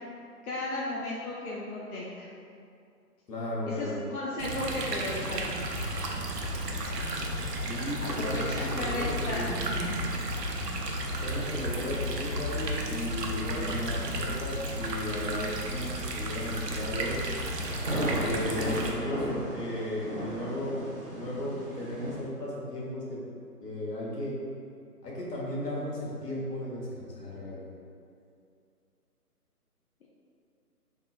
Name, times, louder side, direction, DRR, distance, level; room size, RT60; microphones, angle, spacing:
voice 1, 0.4-2.3 3.7-5.6 8.0-9.7, left 2 dB, 65° left, -5 dB, 0.6 m, -35 dB
voice 2, 3.3-4.0 7.6-9.5 11.2-17.2 17.9-20.8 21.1-23.2 23.6-24.3 25.0-27.6, left 1 dB, 80° left, -5 dB, 1.3 m, -35 dB
sound 1, 4.4-18.9, right 1 dB, 90° right, 0.7 m, -34 dB
sound 2, 5.7-14.4, left 2 dB, 70° right, 1.2 m, -37 dB
sound 3, 16.3-22.2, right 1 dB, 35° right, 0.6 m, -35 dB
3.5 x 2.0 x 4.1 m, 2.5 s
hypercardioid pair, 165°, 48 cm